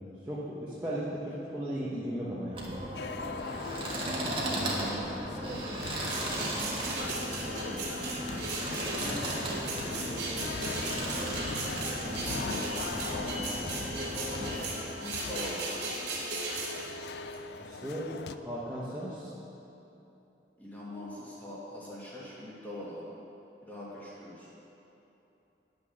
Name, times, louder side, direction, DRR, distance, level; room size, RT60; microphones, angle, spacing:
voice 1, 0.3-2.7 4.2-5.1 5.4-5.7 17.6-19.3, equal, 10° right, -8 dB, 1.1 m, -37 dB
sound 1, 2.5-14.7, right 1 dB, 30° right, 1.5 m, -36 dB
sound 2, 2.9-18.3, left 5 dB, 70° left, 0.4 m, -42 dB
sound 3, 6.0-17.4, right 2 dB, 70° right, 2.5 m, -37 dB
voice 2, 6.5-11.0 11.7-15.6 20.6-23.0 23.6-24.5, left 1 dB, 10° left, -7 dB, 2.1 m, -43 dB
10.5 x 6.1 x 6.5 m, 3.0 s
head